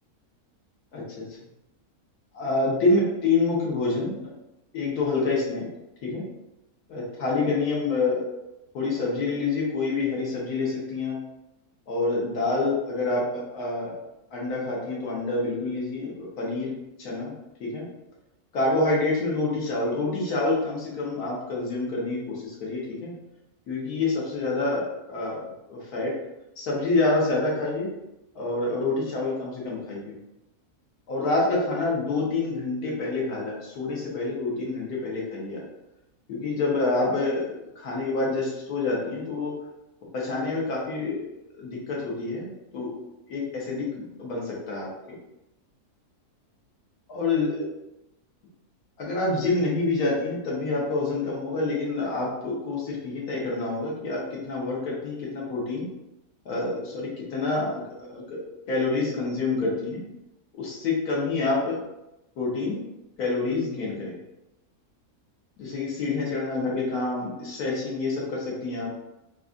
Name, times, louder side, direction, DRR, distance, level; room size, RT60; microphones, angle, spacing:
voice 1, 0.9-1.4 2.3-4.3 4.7-5.7 6.0-6.3 6.9-8.2 8.7-11.2 11.9-14.0 14.3-17.3 17.6-17.9 18.5-23.1 23.7-26.2 26.6-27.9 28.3-30.2 31.1-35.6 36.3-39.6 40.1-41.2 41.5-43.0 43.3-45.2 47.1-47.7 49.0-55.9 56.4-60.0 60.6-61.8 62.4-62.8 63.2-64.2 65.6-68.9, left 3 dB, 75° left, -4 dB, 1.5 m, -27 dB
4.0 x 2.5 x 2.3 m, 0.92 s
omnidirectional pair, 1.6 m